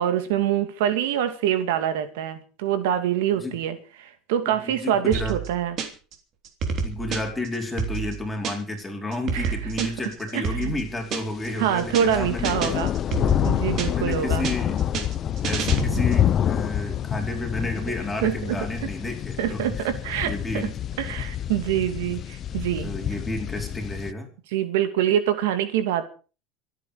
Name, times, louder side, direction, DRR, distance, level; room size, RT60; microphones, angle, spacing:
voice 1, 0.0-5.8 9.3-9.9 10.3-10.7 11.6-12.9 13.4-14.5 18.2-18.6 19.4-20.7 21.0-22.9 24.5-26.1, right 10 dB, 85° right, 9 dB, 2.6 m, -25 dB
voice 2, 4.5-5.4 6.8-12.7 13.9-14.8 15.4-19.8 20.2-20.8 22.8-24.3, left 2 dB, 5° left, 2 dB, 4.4 m, -31 dB
sound 1, 5.1-6.1 6.4-8.8 9.1-11.5 11.8-12.1 12.4-14.1 14.4-16.2, right 6 dB, 35° right, 3.3 m, -30 dB
sound 2, 11.4-24.1, left 10 dB, 30° left, 0.7 m, -27 dB
26.0 x 9.3 x 5.0 m, 0.37 s
cardioid pair, 160°, 0 cm